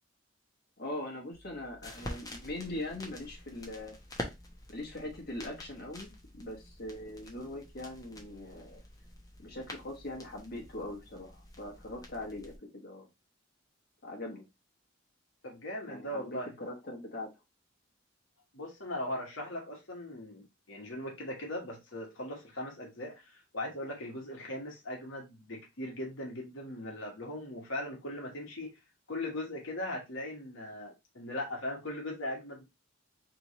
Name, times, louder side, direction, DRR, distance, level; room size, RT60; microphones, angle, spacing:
voice 1, 0.8-3.9 4.7-8.8 9.4-13.1 14.0-14.5 15.9-17.3, left 1 dB, 50° left, 1.3 m, -41 dB
sound 1, 1.3-12.6, left 1 dB, 20° left, 0.9 m, -47 dB
voice 2, 15.4-16.5 18.5-28.8 29.1-32.6, left 1 dB, 75° left, 1.2 m, -39 dB
3.4 x 3.0 x 4.1 m
head